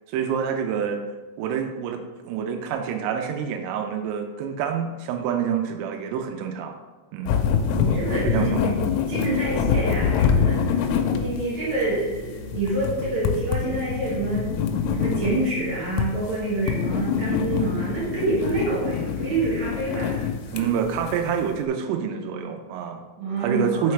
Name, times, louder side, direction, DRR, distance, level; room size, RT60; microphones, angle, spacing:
voice 1, 0.1-1.0 1.4-6.8 7.1-7.4 8.2-8.5 20.5-23.0 23.4-23.9, right 8 dB, 85° right, 5 dB, 3.1 m, -27 dB
sound 1, 7.3-21.5, left 6 dB, 85° left, 3.1 m, -25 dB
voice 2, 7.7-8.7 9.1-14.5 15.0-20.7 23.2-23.9, right 2 dB, 65° right, -7 dB, 1.9 m, -27 dB
5.8 x 5.7 x 3.2 m, 1.2 s
omnidirectional pair, 5.6 m